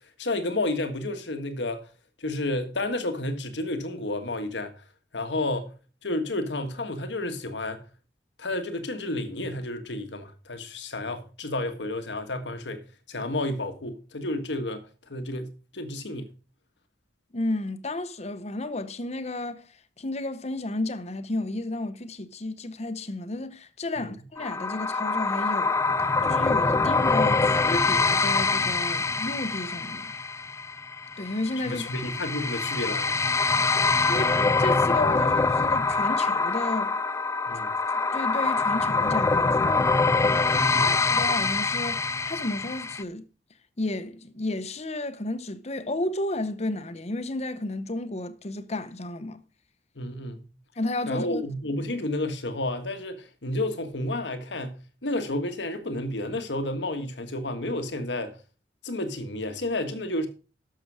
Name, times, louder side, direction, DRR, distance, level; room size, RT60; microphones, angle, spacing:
voice 1, 0.2-1.9 2.2-4.7 5.1-5.7 6.0-7.8 8.4-12.8 13.1-14.8 15.1-16.3 24.0-24.1 31.6-33.1 37.5-37.7 40.5-41.0 49.9-50.5 51.1-58.3 58.8-60.3, left 1 dB, 90° left, 1.6 m, -31 dB
voice 2, 17.3-19.7 20.0-25.8 26.2-30.1 31.2-31.9 34.1-37.0 37.9-39.9 40.8-43.3 43.8-49.4 50.8-51.4, left 2 dB, 40° left, 0.9 m, -32 dB
sound 1, 24.4-43.0, left 3 dB, 15° left, 0.4 m, -24 dB
11.5 x 6.8 x 4.9 m
head